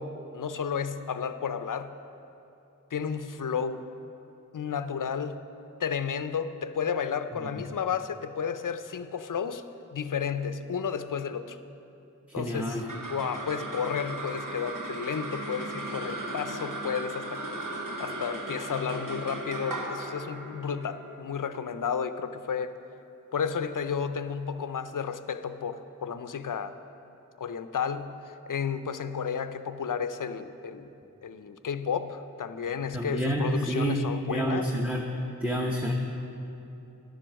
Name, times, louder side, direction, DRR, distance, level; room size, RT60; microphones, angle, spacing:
voice 1, 0.0-1.9 2.9-3.9 4.5-5.5 5.8-9.6 9.9-11.6 12.3-17.4 18.0-22.7 23.3-26.7 27.4-30.9 31.2-34.7, left 6 dB, 75° left, 11 dB, 0.5 m, -32 dB
voice 2, 12.3-12.8 32.9-34.0 34.3-35.0 35.4-35.9, right 1 dB, 5° right, 0 dB, 0.9 m, -28 dB
sound 1, 12.6-23.2, right 2 dB, 70° right, 1.1 m, -37 dB
10.5 x 7.6 x 6.3 m, 2.8 s
wide cardioid pair, 45°, 32 cm